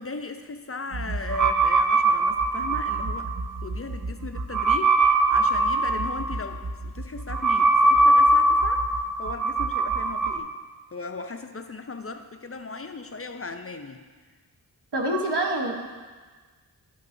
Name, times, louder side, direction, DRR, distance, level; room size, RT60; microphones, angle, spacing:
voice 1, 0.0-3.3 3.6-10.6 10.9-14.1, left 3 dB, 35° left, 7 dB, 0.5 m, -37 dB
sound 1, 0.9-10.4, right 2 dB, 50° right, 0.5 m, -22 dB
voice 2, 14.9-15.7, right 1 dB, 75° right, 1 dB, 1.1 m, -25 dB
11.5 x 5.8 x 2.6 m, 1.4 s
wide cardioid pair, 55°, 41 cm